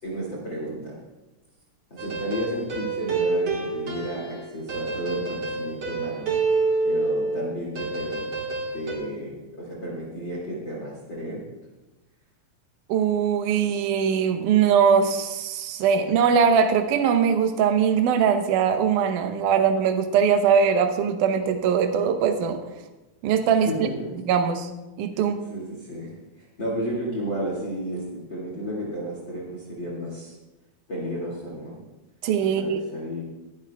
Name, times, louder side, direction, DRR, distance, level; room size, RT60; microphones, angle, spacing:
voice 1, 0.0-1.0 1.9-6.3 6.8-8.2 8.7-11.4 23.7-24.1 25.1-25.2 25.5-30.4 30.9-31.8 32.4-33.2, equal, 35° left, -4 dB, 2.6 m, -32 dB
sound 1, 2.0-7.5 7.7-8.9, right 3 dB, 40° right, 1.5 m, -27 dB
voice 2, 12.9-22.6 23.2-23.7 24.3-24.7 25.0-25.4 32.2-32.8, right 7 dB, 70° right, 6 dB, 2.1 m, -21 dB
20.0 x 11.0 x 2.3 m, 1.1 s
omnidirectional pair, 4.3 m